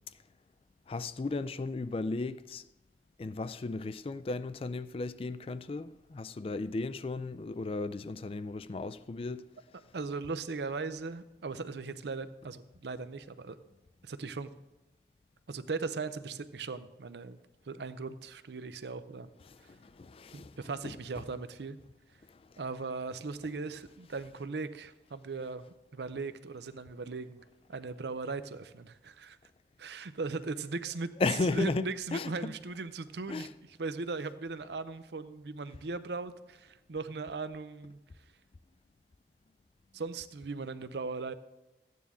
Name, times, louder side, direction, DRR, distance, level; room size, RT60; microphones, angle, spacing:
voice 1, 0.9-2.6 3.2-9.4 19.5-20.6 20.8-21.0 22.3-22.4 31.2-32.5 33.3-33.5, left 3 dB, 30° left, 0.3 m, -35 dB
voice 2, 9.9-13.6 14.0-14.5 15.5-17.4 17.7-19.3 20.3-21.8 22.6-27.4 27.7-29.4 29.8-31.1 31.5-33.5 33.8-38.0 39.9-41.3, right 4 dB, 70° right, 0.6 m, -38 dB
14.0 x 9.4 x 3.6 m
head